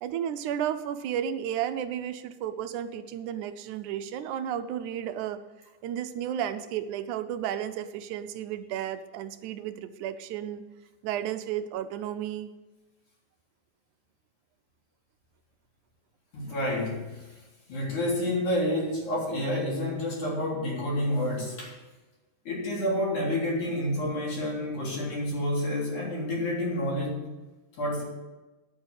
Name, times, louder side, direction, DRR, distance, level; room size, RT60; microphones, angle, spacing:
voice 1, 0.0-5.4 5.8-10.6 11.0-12.5, right 10 dB, 75° right, 10 dB, 2.0 m, -33 dB
voice 2, 16.3-17.3 17.7-21.7 22.4-27.2 27.8-28.0, left 1 dB, 60° left, -4 dB, 4.9 m, -29 dB
9.6 x 8.6 x 8.1 m, 1.1 s
omnidirectional pair, 3.8 m